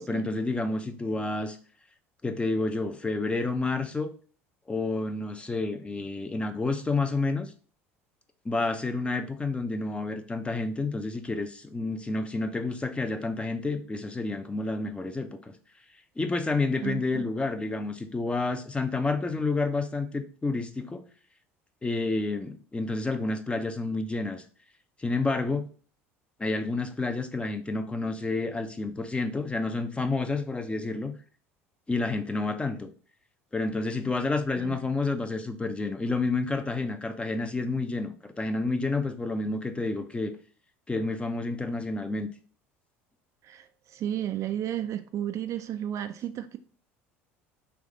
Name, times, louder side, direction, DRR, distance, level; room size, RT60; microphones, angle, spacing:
voice 1, 0.0-1.6 2.2-4.1 4.7-7.5 8.4-15.5 16.2-21.0 21.8-24.4 25.0-25.6 26.4-31.1 31.9-32.9 33.5-40.3 40.9-42.3, left 3 dB, 15° left, 0.6 m, -29 dB
voice 2, 16.8-17.3 34.6-34.8 43.4-46.6, right 11 dB, 45° right, 0.4 m, -33 dB
3.5 x 3.1 x 3.7 m
hypercardioid pair, 75°, 7 cm